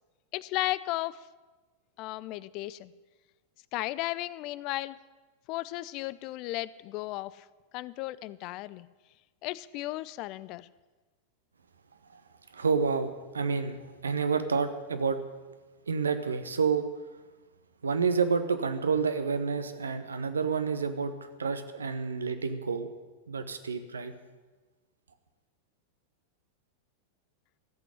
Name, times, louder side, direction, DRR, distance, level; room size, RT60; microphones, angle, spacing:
voice 1, 0.3-1.2 2.0-2.9 3.7-5.0 5.5-7.4 7.7-8.9 9.4-10.7, left 17 dB, 40° left, 18 dB, 0.5 m, -35 dB
voice 2, 12.5-15.2 15.9-16.9 17.8-22.9 23.3-24.1, right 5 dB, 70° right, 10 dB, 1.1 m, -29 dB
15.0 x 8.4 x 9.9 m, 1.2 s
figure-of-eight pair, 90°, 0 cm